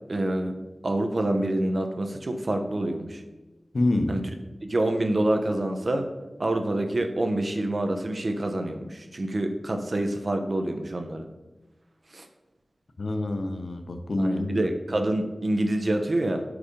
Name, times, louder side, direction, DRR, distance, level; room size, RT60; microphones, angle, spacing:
voice 1, 0.1-0.6 0.8-3.2 4.1-4.2 4.6-6.1 6.4-11.3 12.1-12.3 14.2-16.4, right 1 dB, 55° right, 5 dB, 0.8 m, -27 dB
voice 2, 3.7-4.1 13.0-14.6, left 2 dB, 75° left, 7 dB, 0.7 m, -27 dB
5.0 x 4.8 x 5.1 m, 1.1 s
wide cardioid pair, 70°, 0 cm